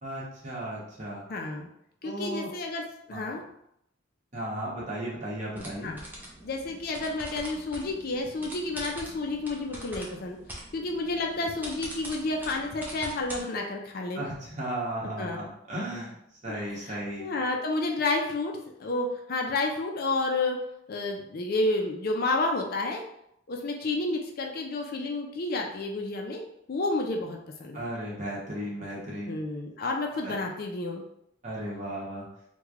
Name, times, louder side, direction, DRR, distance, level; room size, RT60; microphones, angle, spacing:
voice 1, 0.0-1.2 2.0-2.5 3.1-3.3 4.3-5.9 14.1-17.4 27.7-29.3 30.2-30.3 31.4-32.3, right 1 dB, 35° right, -6 dB, 1.1 m, -35 dB
voice 2, 1.3-1.7 2.0-3.4 5.8-6.0 6.4-10.4 10.7-14.2 15.2-15.4 16.5-20.6 20.9-23.0 23.5-26.4 26.7-27.8 29.3-31.0, left 2 dB, 45° left, 1 dB, 0.4 m, -30 dB
sound 1, 5.6-13.4, right 1 dB, 10° right, 0.5 m, -43 dB
3.2 x 2.2 x 3.5 m, 0.76 s
head